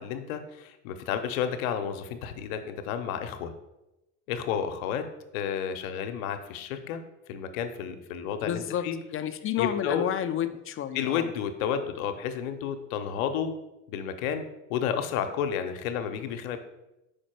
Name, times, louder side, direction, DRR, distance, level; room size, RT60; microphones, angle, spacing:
voice 1, 0.0-3.5 4.3-5.1 5.3-7.0 7.3-9.0 9.6-10.0 10.9-13.5 13.9-16.6, left 8 dB, 70° left, 8 dB, 0.8 m, -31 dB
voice 2, 8.4-8.8 9.1-11.3, left 10 dB, 30° left, 10 dB, 0.5 m, -30 dB
5.2 x 4.5 x 4.4 m, 0.94 s
hypercardioid pair, 70°, 43 cm